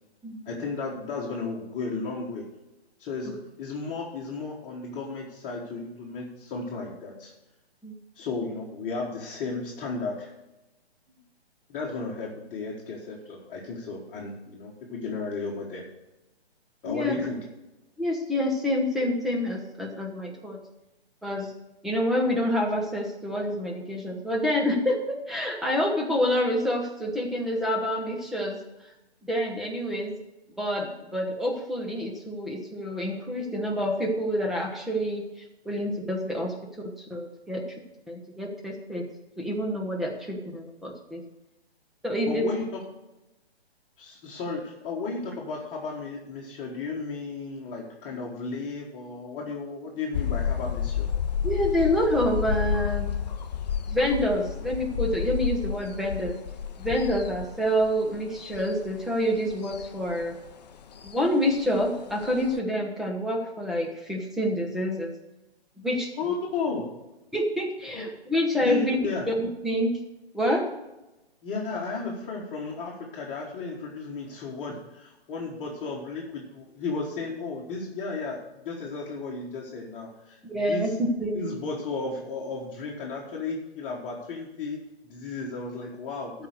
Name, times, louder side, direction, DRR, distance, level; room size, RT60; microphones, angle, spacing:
voice 1, 0.4-2.4 3.0-7.3 8.1-10.3 11.7-15.8 16.8-17.4 42.3-42.8 44.0-51.1 66.1-66.9 67.9-68.0 68.6-69.2 71.4-80.4 80.7-81.0 81.3-84.8 85.0-86.3, left 4 dB, 20° left, -5 dB, 1.4 m, -34 dB
voice 2, 16.8-17.2 18.0-20.6 21.2-21.5 21.8-28.6 29.2-30.1 30.6-35.2 35.7-36.5 37.1-37.6 38.1-39.0 39.4-41.2 42.0-42.4 51.4-53.1 53.9-56.4 56.8-60.3 61.0-65.1 65.8-66.1 67.3-69.0 69.3-69.9 70.3-70.6 80.4-81.5, equal, ahead, 0 dB, 0.6 m, -27 dB
sound 1, 50.1-62.6, left 8 dB, 40° left, 0.6 m, -31 dB
13.0 x 4.9 x 6.5 m, 1.0 s
figure-of-eight pair, 140°, 32 cm